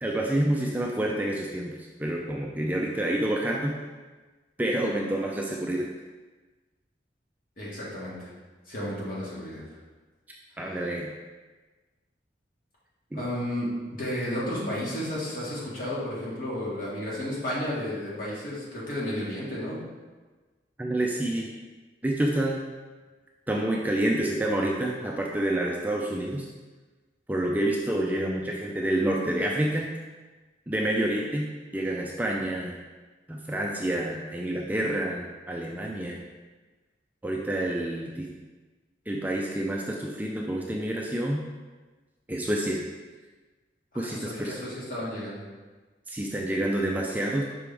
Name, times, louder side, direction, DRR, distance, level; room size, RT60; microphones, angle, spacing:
voice 1, 0.0-3.7 4.6-5.9 10.6-11.1 14.6-14.8 20.8-21.5 22.0-22.6 23.5-26.5 27.3-29.9 30.7-31.5 31.7-32.7 33.3-36.2 37.2-38.3 39.1-41.4 42.3-42.8 43.9-44.5 46.1-47.4, right 1 dB, 10° right, -2 dB, 0.4 m, -28 dB
voice 2, 7.6-8.3 8.7-9.6 13.1-13.7 14.0-19.8 44.0-45.4, left 1 dB, 50° left, -7 dB, 1.9 m, -32 dB
6.0 x 4.9 x 3.4 m, 1.3 s
head